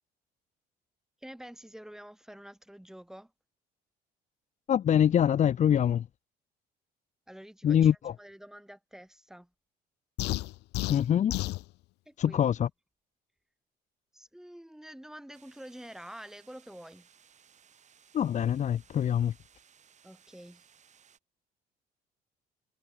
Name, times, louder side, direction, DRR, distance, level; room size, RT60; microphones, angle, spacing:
voice 1, 1.2-3.3 7.3-7.9 8.2-9.5 12.1-12.5 14.1-17.1 20.0-20.7, equal, 5° right, 3.0 m, -48 dB
voice 2, 4.7-6.0 7.6-8.1 10.9-11.4 12.2-12.7 18.1-19.3, left 9 dB, 45° left, 0.9 m, -24 dB
sound 1, 10.2-11.6, left 19 dB, 85° left, 1.3 m, -32 dB
sound 2, 15.3-21.2, right 8 dB, 45° right, 6.0 m, -62 dB
cardioid pair, 110°, 17 cm